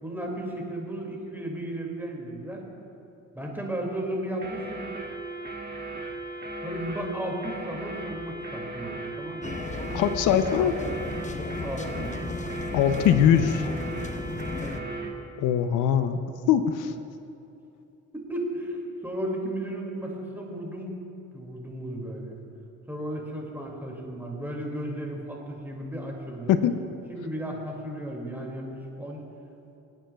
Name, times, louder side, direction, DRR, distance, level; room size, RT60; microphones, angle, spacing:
voice 1, 0.0-2.6 3.3-4.9 6.6-9.5 10.6-11.2 11.6-12.2 14.6-14.8 18.1-21.0 21.3-22.4 22.9-26.5 27.1-28.7 29.0-29.2, right 1 dB, 5° right, -1 dB, 2.3 m, -34 dB
sound 1, 4.4-15.2, right 2 dB, 30° right, 1.6 m, -37 dB
sound 2, 9.4-14.8, left 3 dB, 25° left, 0.7 m, -35 dB
voice 2, 9.9-10.7 12.7-13.7 15.4-16.2 16.5-16.9 26.5-26.8, left 9 dB, 90° left, 10 dB, 0.6 m, -21 dB
24.0 x 8.9 x 2.3 m, 2.8 s
cardioid pair, 90°, 30 cm